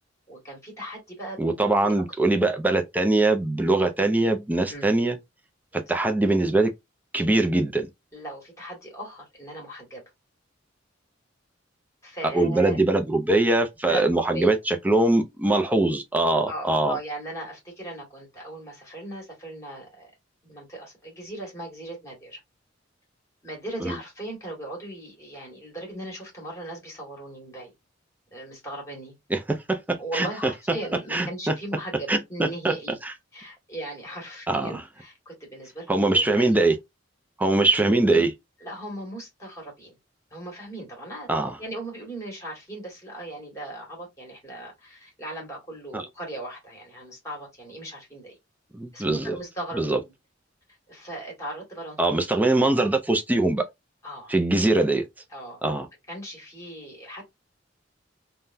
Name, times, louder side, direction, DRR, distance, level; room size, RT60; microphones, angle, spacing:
voice 1, 0.3-1.9 4.7-5.0 8.1-10.0 12.0-12.8 13.9-14.0 14.3-14.5 16.5-20.1 20.4-22.4 23.4-27.7 28.3-29.1 30.0-33.0 33.3-36.6 38.1-38.2 38.6-40.0 40.3-41.3 41.6-48.4 48.9-49.8 50.9-52.0 54.0-54.3 55.3-55.6 56.1-57.3, right 1 dB, 15° left, 1.8 m, -38 dB
voice 2, 1.4-5.2 5.7-6.7 7.1-7.9 12.3-17.0 23.8-24.0 29.3-30.5 31.1-31.5 32.1-32.7 34.5-34.8 35.9-36.7 37.4-38.3 41.3-41.6 45.9-46.0 48.7-49.3 49.7-50.0 52.0-53.6 54.3-55.1 55.6-55.9, right 2 dB, 10° right, 0.5 m, -22 dB
3.5 x 2.3 x 2.6 m
head